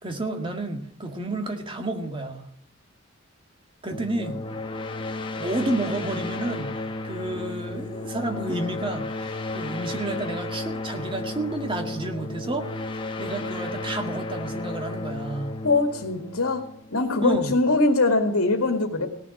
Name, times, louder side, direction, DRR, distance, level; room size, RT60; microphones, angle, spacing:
voice 1, 0.0-2.5 3.8-4.4 5.4-6.7 7.0-12.7 13.2-15.6 17.2-17.5, right 2 dB, 25° right, 4 dB, 1.8 m, -30 dB
sound 1, 3.9-17.2, left 2 dB, 25° left, 1.3 m, -33 dB
voice 2, 15.6-16.6 16.9-19.1, left 3 dB, 85° left, 4 dB, 2.1 m, -22 dB
18.0 x 7.1 x 9.8 m, 0.65 s
head